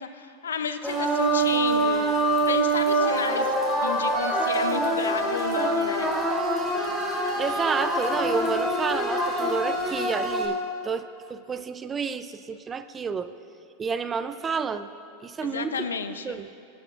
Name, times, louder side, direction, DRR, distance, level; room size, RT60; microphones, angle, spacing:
voice 1, 0.0-3.5 3.8-6.1 15.4-16.4, left 6 dB, 90° left, 10 dB, 0.6 m, -32 dB
sound 1, 0.8-10.5, right 1 dB, ahead, 2.4 m, -25 dB
voice 2, 7.4-10.6 10.8-13.3 13.8-14.9 15.2-15.9 16.2-16.5, right 5 dB, 20° right, 11 dB, 0.5 m, -30 dB
18.5 x 9.5 x 2.5 m, 2.4 s
hypercardioid pair, 105°, 0 cm